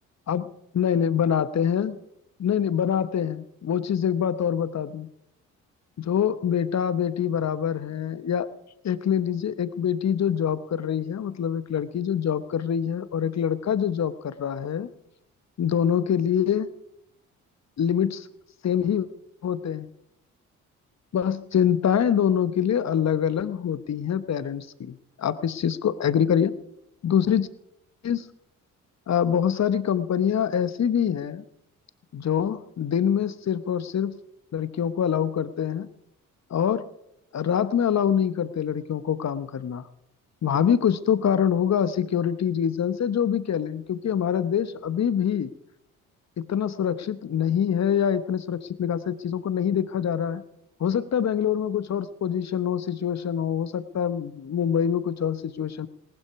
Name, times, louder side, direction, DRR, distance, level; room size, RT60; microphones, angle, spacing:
voice 1, 0.7-2.0 2.4-5.1 6.0-8.5 8.8-14.9 15.6-16.7 17.8-18.3 18.6-19.1 19.4-19.9 21.1-26.5 27.0-27.5 28.0-28.2 29.1-31.4 32.1-34.2 34.5-35.9 36.5-36.8 37.3-39.9 40.4-45.5 46.4-50.4 50.8-55.9, left 8 dB, 40° left, 14 dB, 1.0 m, -25 dB
19.0 x 12.0 x 4.8 m, 0.82 s
hypercardioid pair, 45°, 41 cm